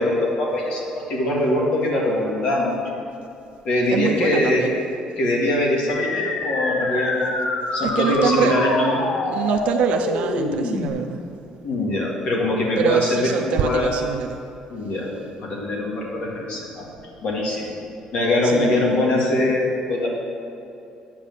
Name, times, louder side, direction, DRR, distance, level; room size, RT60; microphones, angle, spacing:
voice 1, 0.0-2.9 3.6-4.7 5.2-7.4 7.7-9.0 11.6-14.0 14.7-15.1 15.4-16.9 17.2-17.7 18.1-20.1, left 1 dB, 60° left, -2 dB, 2.1 m, -22 dB
voice 2, 3.9-4.7 7.8-8.6 9.3-11.2 12.8-14.4 18.4-18.8, right 8 dB, 70° right, 4 dB, 0.5 m, -24 dB
sound 1, 5.9-10.9, left 3 dB, 80° left, 1.3 m, -26 dB
9.9 x 6.0 x 7.5 m, 2.6 s
cardioid pair, 140°, 2 cm